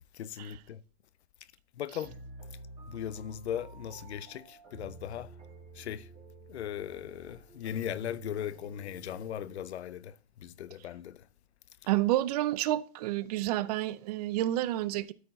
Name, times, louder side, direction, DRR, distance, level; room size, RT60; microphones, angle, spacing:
voice 1, 0.1-0.8 1.8-2.1 2.9-5.3 5.8-6.1 6.5-11.2, left 10 dB, 85° left, 0.6 m, -38 dB
sound 1, 2.0-9.6, right 3 dB, 20° right, 2.5 m, -50 dB
voice 2, 11.9-15.1, right 14 dB, 40° right, 0.4 m, -29 dB
12.5 x 4.5 x 4.0 m
hypercardioid pair, 130°, 32 cm